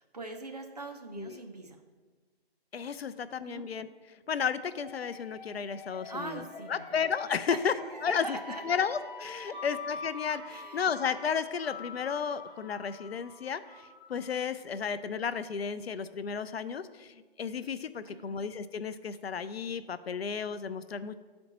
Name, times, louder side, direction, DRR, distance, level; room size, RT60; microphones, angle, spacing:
voice 1, 0.0-1.8 3.4-3.7 6.0-7.1 7.5-8.6 9.5-9.6 10.5-10.8 18.1-18.4, right 2 dB, 40° right, 4 dB, 0.7 m, -42 dB
voice 2, 2.7-3.9 4.3-6.4 6.7-7.7 8.0-8.4 8.6-21.2, left 6 dB, 75° left, 13 dB, 0.5 m, -33 dB
sound 1, 4.7-14.4, left 4 dB, 35° left, 2.1 m, -45 dB
10.5 x 4.2 x 2.9 m, 1.3 s
hypercardioid pair, 175°, 32 cm